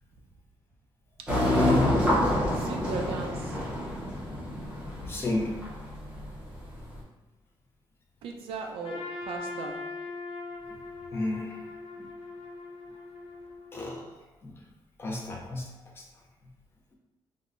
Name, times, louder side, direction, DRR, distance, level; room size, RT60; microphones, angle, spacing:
voice 1, 1.2-2.0 2.5-3.6 8.2-9.9, right 4 dB, 80° right, 3 dB, 0.4 m, -37 dB
sound 1, 1.3-6.9, left 1 dB, 10° right, 0.7 m, -27 dB
voice 2, 5.0-5.6 10.7-10.8 11.1-11.7 12.0-12.1 13.7-14.6 15.0-16.1, left 2 dB, 25° left, -1 dB, 0.5 m, -34 dB
Trumpet, 8.8-13.9, left 3 dB, 70° left, 0.6 m, -40 dB
3.6 x 2.0 x 2.4 m, 1.1 s
wide cardioid pair, 170°, 9 cm